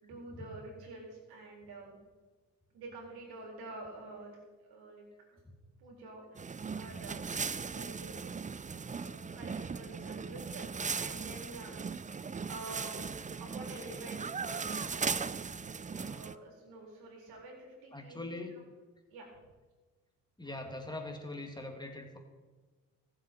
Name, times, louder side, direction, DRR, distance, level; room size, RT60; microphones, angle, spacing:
voice 1, 0.0-2.0 2.7-5.0 5.3-5.4 5.8-6.4 6.7-8.2 9.0-11.8 12.5-13.0 13.4-15.4 16.0-18.4 19.1-19.4, right 2 dB, 85° right, 0 dB, 4.0 m, -48 dB
sound 1, 6.3-16.3, right 5 dB, 20° right, 0.5 m, -38 dB
voice 2, 17.9-18.6 20.4-22.2, left 2 dB, 10° left, 3 dB, 2.6 m, -42 dB
20.5 x 7.9 x 4.5 m, 1.3 s
supercardioid pair, 65°, 37 cm